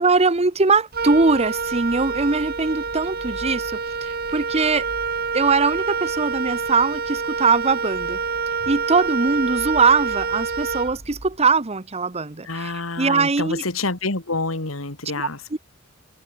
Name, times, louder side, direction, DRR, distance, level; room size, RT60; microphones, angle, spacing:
voice 1, 0.0-4.9 5.3-8.2 8.7-12.7 13.0-13.6 15.2-15.6, right 4 dB, 30° right, 1.1 m, -21 dB
Wind instrument woodwind instrument, 0.9-11.4, right 5 dB, 50° right, 3.5 m, -27 dB
voice 2, 12.4-15.6, left 3 dB, 85° left, 2.6 m, -28 dB
head